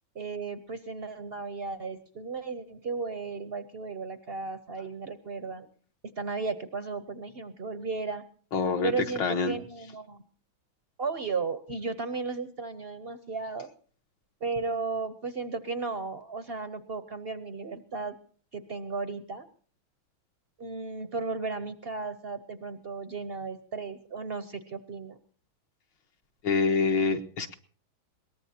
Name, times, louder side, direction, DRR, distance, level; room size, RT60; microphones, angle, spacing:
voice 1, 0.1-5.7 6.2-8.2 8.8-10.2 11.0-13.7 14.4-18.1 18.5-19.5 20.6-25.2, right 4 dB, 55° right, 11 dB, 0.7 m, -35 dB
voice 2, 8.5-9.6 26.4-27.5, left 4 dB, 70° left, 4 dB, 1.9 m, -26 dB
22.0 x 18.5 x 2.8 m, 0.44 s
omnidirectional pair, 2.1 m